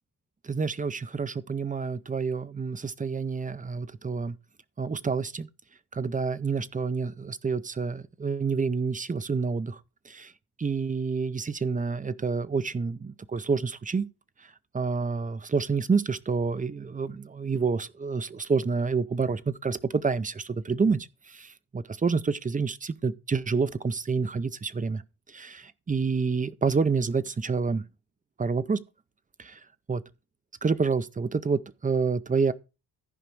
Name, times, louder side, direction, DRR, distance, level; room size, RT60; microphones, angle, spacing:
voice 1, 0.4-4.3 4.8-5.5 5.9-9.8 10.1-10.3 10.6-14.1 14.7-25.0 25.3-27.8 28.4-28.8 29.4-29.6 29.9-30.0 30.6-32.5, right 5 dB, 20° right, 0.5 m, -28 dB
14.5 x 5.1 x 4.5 m
wide cardioid pair, 150°, 40 cm